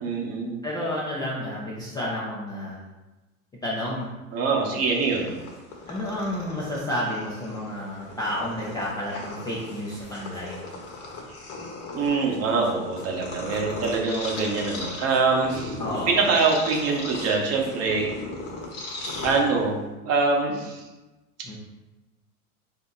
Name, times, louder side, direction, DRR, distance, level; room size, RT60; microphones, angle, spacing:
voice 1, 0.0-0.6 4.3-5.3 11.9-18.1 19.2-20.8, right 4 dB, 35° right, 0 dB, 0.9 m, -24 dB
voice 2, 0.6-2.8 3.6-4.1 5.9-10.7 15.8-16.2 21.4-21.6, left 1 dB, 10° left, -7 dB, 0.4 m, -31 dB
Purr, 4.8-19.9, left 2 dB, 35° left, 1.0 m, -38 dB
3.4 x 2.7 x 3.8 m, 1.1 s
hypercardioid pair, 100°, 43 cm